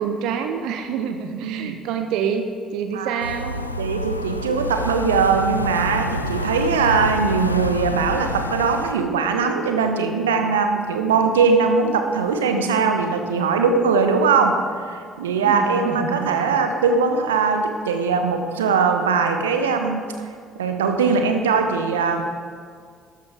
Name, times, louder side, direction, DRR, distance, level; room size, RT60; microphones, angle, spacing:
voice 1, 0.0-3.6 15.4-16.6, right 7 dB, 60° right, 7 dB, 0.6 m, -27 dB
voice 2, 1.3-1.8 2.9-3.2 3.8-14.6 14.9-20.0 20.5-22.2, right 5 dB, 75° right, 6 dB, 0.9 m, -20 dB
sound 1, 3.2-8.9, left 1 dB, 90° left, 0.3 m, -27 dB
13.0 x 10.0 x 3.6 m, 2.1 s
figure-of-eight pair, 50°, 0 cm